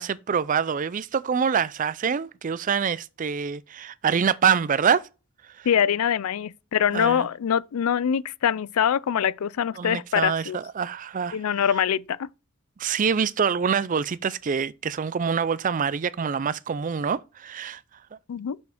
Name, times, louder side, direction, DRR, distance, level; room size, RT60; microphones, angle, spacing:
voice 1, 0.0-5.1 5.4-5.7 6.9-7.3 9.8-11.7 12.8-17.8, right 6 dB, 35° right, 0.4 m, -25 dB
voice 2, 5.7-10.6 11.3-12.3 18.3-18.6, left 8 dB, 90° left, 0.4 m, -24 dB
6.4 x 5.6 x 4.9 m
head